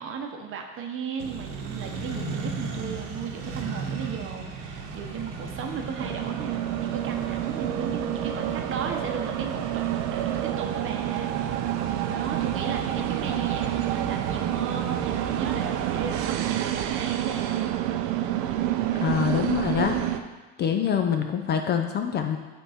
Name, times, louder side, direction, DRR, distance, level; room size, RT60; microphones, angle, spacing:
voice 1, 0.0-17.6, right 6 dB, 40° right, 4 dB, 0.8 m, -36 dB
Accelerating revving vroom, 1.2-16.2, right 4 dB, 70° right, 0.9 m, -37 dB
sound 1, 6.0-20.2, right 12 dB, 90° right, 0.5 m, -28 dB
voice 2, 18.9-20.0 20.6-22.4, left 8 dB, 30° left, 5 dB, 0.4 m, -25 dB
8.2 x 3.6 x 4.2 m, 1.2 s
cardioid pair, 135°, 32 cm